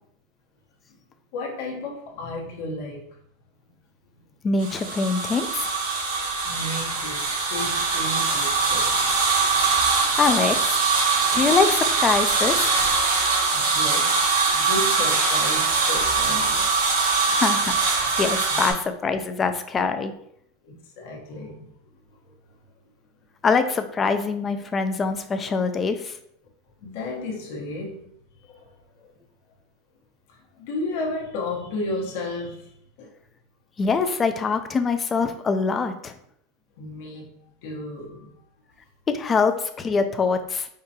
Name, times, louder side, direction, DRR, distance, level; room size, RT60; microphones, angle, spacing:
voice 1, 1.3-3.2 6.4-9.0 9.9-10.1 13.5-14.2 14.5-16.7 18.5-18.8 20.6-21.7 22.2-22.3 26.8-28.1 28.4-29.1 30.3-32.7 33.0-33.1 36.8-38.3, left 2 dB, 65° left, 1.0 m, -33 dB
voice 2, 4.4-5.7 10.2-10.8 11.3-12.7 17.3-17.7 18.2-18.7 19.0-20.1 23.4-26.2 33.8-36.1 39.1-40.7, left 4 dB, 20° left, 0.4 m, -23 dB
sound 1, 4.6-18.7, right 4 dB, 80° right, 1.3 m, -22 dB
4.3 x 3.7 x 2.8 m
supercardioid pair, 140°, 0 cm